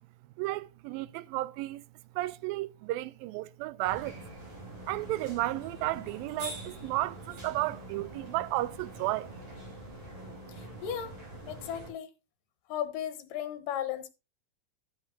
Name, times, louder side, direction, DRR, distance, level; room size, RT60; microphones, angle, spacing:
voice 1, 0.4-1.8 2.2-4.2 4.9-9.3, right 17 dB, 85° right, 2.4 m, -33 dB
sound 1, 3.8-11.9, right 1 dB, 40° right, 5.9 m, -44 dB
voice 2, 10.5-11.2 11.5-12.1 12.7-14.1, left 10 dB, 70° left, 2.6 m, -35 dB
13.0 x 7.8 x 2.7 m
omnidirectional pair, 4.2 m